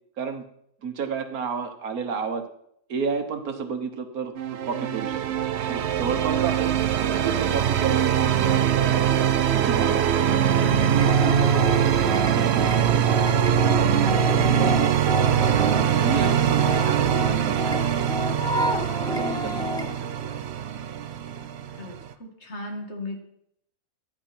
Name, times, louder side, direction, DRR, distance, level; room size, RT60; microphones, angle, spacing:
voice 1, 0.8-2.4 2.9-5.2 5.7-9.1 9.5-10.0 10.9-12.8 14.1-15.7 16.0-17.9 19.0-19.7 20.0-20.5, right 6 dB, 75° right, 7 dB, 1.7 m, -32 dB
sound 1, 4.4-22.1, right 9 dB, 55° right, 0.8 m, -22 dB
voice 2, 10.6-11.0 13.6-14.2 19.0-19.2 21.7-23.2, left 2 dB, 50° left, 2 dB, 2.5 m, -37 dB
sound 2, 11.0-20.0, left 1 dB, 5° left, 0.4 m, -30 dB
15.0 x 9.8 x 4.4 m, 0.72 s
omnidirectional pair, 1.5 m